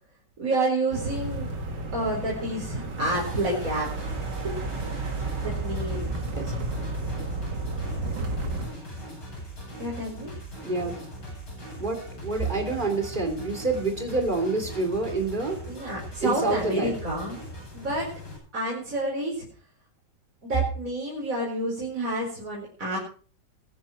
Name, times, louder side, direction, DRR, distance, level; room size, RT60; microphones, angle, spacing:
voice 1, 0.4-1.5 1.9-4.1 4.4-4.6 5.4-6.1 9.7-10.3 15.6-17.4 17.7-18.1 18.5-19.4 20.4-23.0, right 1 dB, 50° right, -4 dB, 5.0 m, -29 dB
sound 1, 0.9-8.7, right 2 dB, 80° right, 2.6 m, -32 dB
sound 2, 3.1-18.4, equal, 75° left, 8.4 m, -40 dB
voice 2, 10.6-11.0 11.8-15.6 16.2-16.9, right 3 dB, 25° right, 4 dB, 3.3 m, -27 dB
22.0 x 9.1 x 4.5 m, 0.41 s
omnidirectional pair, 1.9 m